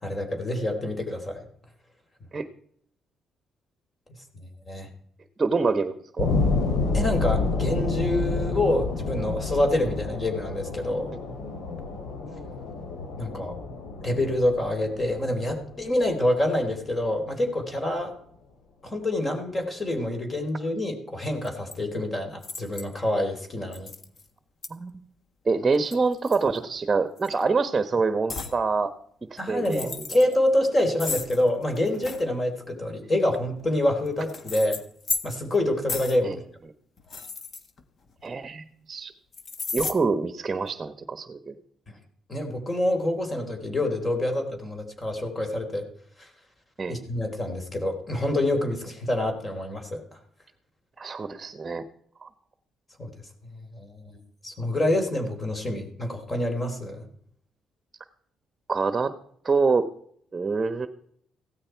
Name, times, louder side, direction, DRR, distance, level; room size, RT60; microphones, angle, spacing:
voice 1, 0.0-1.4 4.3-4.9 6.9-11.1 13.2-13.6 14.0-18.1 18.8-23.9 29.4-34.8 35.2-36.3 41.9-42.0 42.3-45.8 46.2-46.3 46.9-50.0 53.0-53.1 53.5-57.1, left 1 dB, 30° left, 4 dB, 3.9 m, -27 dB
voice 2, 5.4-6.3 24.7-24.9 25.4-28.9 29.5-30.0 36.2-36.4 38.2-39.1 39.7-41.6 46.8-47.0 51.0-51.8 52.2-52.3 58.7-59.1 59.4-59.9 60.3-60.9, right 4 dB, 30° right, 10 dB, 1.1 m, -26 dB
sound 1, 6.2-17.0, left 3 dB, 80° left, 3.2 m, -29 dB
sound 2, 21.4-21.8 22.4-23.0 23.7-24.3 24.6-24.7 25.7-26.8 27.2-27.4 28.3-28.6 29.5-30.4 31.0-32.3 33.3-35.6 35.9-36.2 37.0-38.3 39.3-40.0, left 4 dB, 50° left, 1.6 m, -35 dB
16.5 x 13.0 x 4.7 m, 0.65 s
cardioid pair, 90°, 0 cm